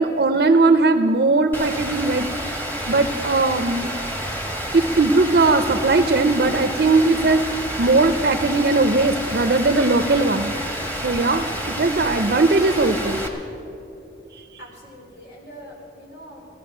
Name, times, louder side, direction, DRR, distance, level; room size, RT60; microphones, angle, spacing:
voice 1, 0.0-3.9 4.7-7.4 7.8-10.5 11.0-13.2, right 3 dB, 60° right, 8 dB, 0.5 m, -19 dB
Rain, 1.5-13.3, equal, 10° left, 1.3 m, -29 dB
voice 2, 14.6-16.5, equal, 65° left, -2 dB, 3.9 m, -42 dB
15.5 x 14.0 x 6.0 m, 3.0 s
head